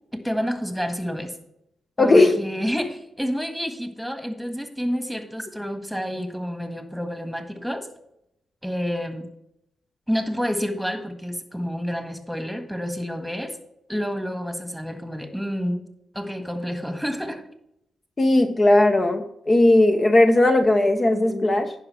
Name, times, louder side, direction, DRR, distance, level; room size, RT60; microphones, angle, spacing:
voice 1, 0.1-1.3 2.0-7.9 8.6-9.3 10.1-13.6 13.9-15.9 16.1-17.4, equal, ahead, 7 dB, 1.6 m, -29 dB
voice 2, 2.0-2.4 18.2-21.7, left 2 dB, 40° left, 6 dB, 0.8 m, -17 dB
10.5 x 5.0 x 4.8 m, 0.77 s
supercardioid pair, 45°, 0 cm